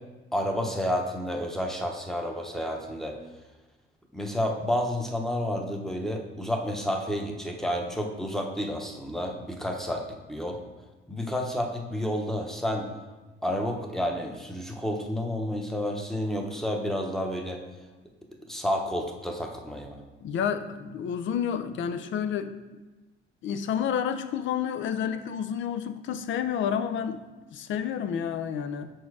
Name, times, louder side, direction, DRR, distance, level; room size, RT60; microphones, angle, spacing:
voice 1, 0.3-3.2 4.1-10.0 10.3-10.6 11.1-12.9 13.4-17.6 18.5-20.0, equal, ahead, 2 dB, 0.9 m, -30 dB
voice 2, 20.2-22.5 23.4-27.2 27.5-28.9, left 8 dB, 65° left, 10 dB, 0.5 m, -30 dB
6.0 x 4.5 x 4.7 m, 1.2 s
cardioid pair, 110°, 21 cm